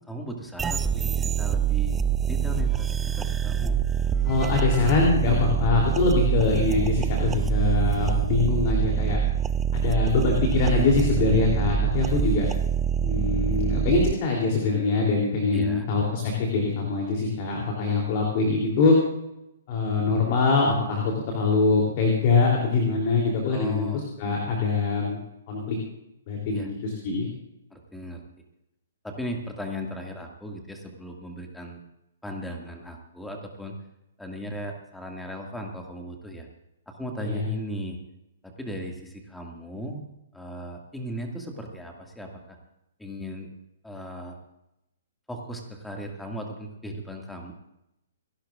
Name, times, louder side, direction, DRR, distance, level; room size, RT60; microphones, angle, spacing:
voice 1, 0.1-2.0 2.3-3.8 15.5-15.9 23.5-24.6 26.5-26.7 27.7-28.2 29.0-31.8 32.2-33.8 34.2-36.5 36.9-38.0 38.4-40.1 40.3-42.6 43.0-43.5 43.8-44.4 45.3-47.5, equal, 5° left, 2 dB, 2.1 m, -37 dB
sound 1, 0.6-14.1, right 8 dB, 15° right, 0.5 m, -25 dB
voice 2, 4.2-9.2 9.7-12.5 13.0-19.0 19.7-25.2 25.5-25.8 26.3-27.3 37.2-37.5, left 4 dB, 40° left, 0 dB, 3.2 m, -23 dB
28.0 x 11.5 x 2.5 m, 0.88 s
figure-of-eight pair, 125°, 0 cm